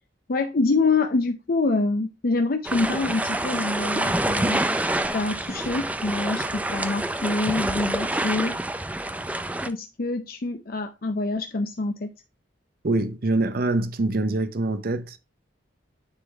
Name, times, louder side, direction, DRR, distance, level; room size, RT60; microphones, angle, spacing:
voice 1, 0.3-4.6 5.1-8.6 9.7-12.1, left 3 dB, 50° left, 0.5 m, -26 dB
sound 1, 2.6-9.7, right 1 dB, 10° right, 0.4 m, -27 dB
voice 2, 12.8-15.2, right 2 dB, 50° right, 0.6 m, -24 dB
9.7 x 3.8 x 3.4 m
head